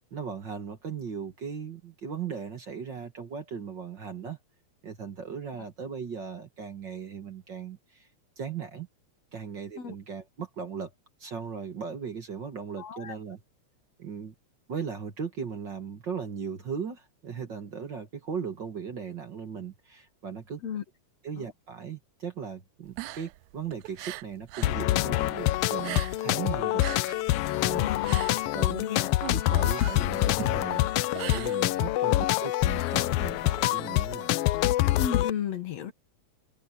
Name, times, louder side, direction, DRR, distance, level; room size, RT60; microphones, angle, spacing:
voice 1, 0.1-4.4 4.8-8.1 8.4-8.9 9.3-10.9 11.2-13.4 14.0-14.3 14.7-20.6 21.2-27.9 28.5-28.8 29.3-34.3, right 6 dB, 45° right, 2.1 m, -38 dB
voice 2, 12.8-13.2 20.6-20.8 21.4-21.5 27.7-29.1 32.1-32.2 35.0-35.9, left 8 dB, 65° left, 2.5 m, -34 dB
sound 1, 22.8-24.8 25.1-26.4 26.7-32.1, right 18 dB, 85° right, 2.0 m, -40 dB
sound 2, 24.6-35.3, left 16 dB, 80° left, 1.3 m, -26 dB
omnidirectional pair, 3.3 m